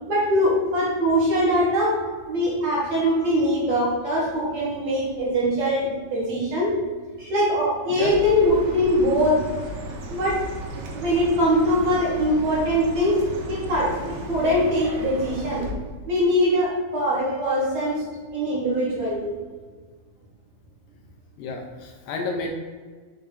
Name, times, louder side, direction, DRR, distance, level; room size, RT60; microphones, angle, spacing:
voice 1, 0.1-2.0 2.3-6.8 7.2-9.4 10.1-10.4 10.9-13.2 13.5-15.7 16.1-18.0 18.3-19.3, equal, 60° right, -6 dB, 2.1 m, -22 dB
voice 2, 7.9-8.3 21.4-22.5, left 3 dB, 80° left, 2 dB, 2.2 m, -30 dB
Chirp tweet, 7.9-15.7, right 1 dB, 85° right, 2.8 m, -35 dB
6.6 x 2.9 x 5.6 m, 1.5 s
omnidirectional pair, 4.3 m